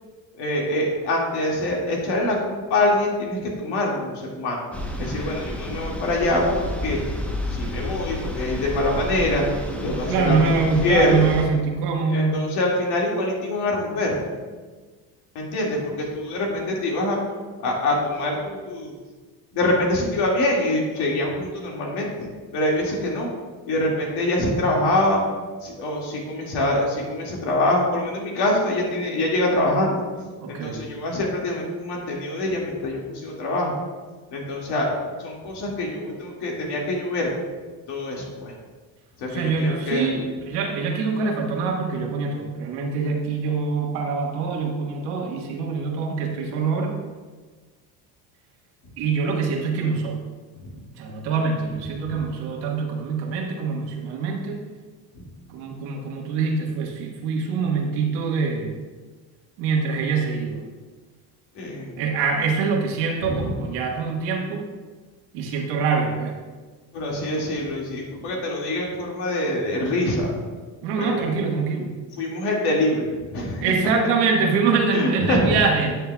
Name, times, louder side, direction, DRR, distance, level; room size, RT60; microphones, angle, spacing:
voice 1, 0.4-4.6 5.0-7.0 7.5-9.4 9.8-10.5 10.8-11.3 12.1-14.2 15.4-17.2 17.6-18.9 19.5-23.3 23.7-25.2 25.6-30.0 30.5-33.7 34.3-37.3 37.9-38.5 39.2-40.1 50.6-50.8 52.1-52.2 55.1-55.3 61.5-61.9 63.2-63.6 66.9-70.3 71.0-71.5 72.2-73.6 74.9-75.5, left 1 dB, 75° left, -2 dB, 2.1 m, -24 dB
sound 1, 4.7-11.4, left 1 dB, 5° left, 0.8 m, -31 dB
voice 2, 10.1-12.4 30.4-30.8 39.3-46.9 49.0-50.2 51.0-54.6 55.5-58.7 59.6-60.6 62.0-64.7 65.3-66.4 70.8-72.0 73.6-76.0, right 5 dB, 85° right, 1 dB, 1.5 m, -24 dB
10.5 x 6.7 x 2.3 m, 1.4 s
supercardioid pair, 100°, 40 cm